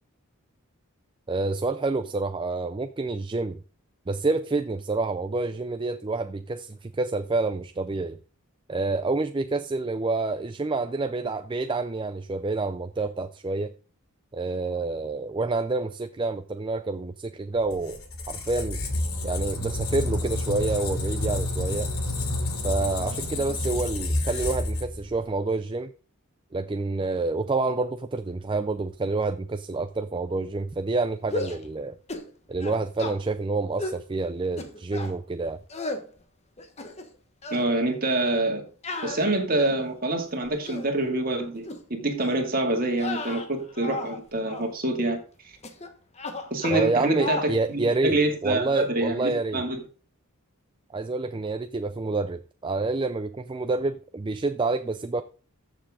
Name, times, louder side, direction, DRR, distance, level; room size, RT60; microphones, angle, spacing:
voice 1, 1.3-3.6 4.1-8.2 8.7-13.7 14.3-18.0 18.3-18.8 19.2-21.9 22.6-25.9 26.5-32.0 32.5-35.6 46.7-49.6 50.9-55.2, right 3 dB, 20° right, 0.4 m, -28 dB
Squeak, 17.6-25.3, left 2 dB, 75° left, 2.8 m, -29 dB
sound 1, 31.2-31.7 32.1-32.3 32.6-33.2 33.8-34.0 34.6-35.1 35.7-36.0 36.6-37.2 37.4-37.7 38.8-39.9 40.4-40.9 41.6-41.8 42.2-42.4 42.9-44.2 44.5-44.7 45.6-45.9 46.2-46.9 47.2-47.5, left 2 dB, 30° left, 1.3 m, -34 dB
voice 2, 37.5-38.6 39.0-45.2 45.4-45.5 46.5-49.8, right 2 dB, 40° right, 2.4 m, -26 dB
14.0 x 7.0 x 3.7 m
head